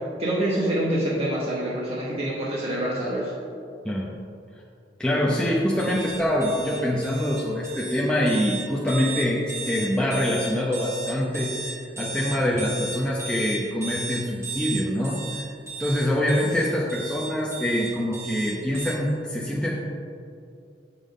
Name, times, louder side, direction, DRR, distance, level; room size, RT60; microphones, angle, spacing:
voice 1, 0.2-3.3, right 1 dB, 30° right, -6 dB, 0.8 m, -26 dB
voice 2, 5.0-15.5 15.8-19.7, equal, 5° left, -5 dB, 0.5 m, -25 dB
sound 1, 5.8-18.9, right 3 dB, 15° right, 1.2 m, -35 dB
7.4 x 5.3 x 3.7 m, 2.5 s
head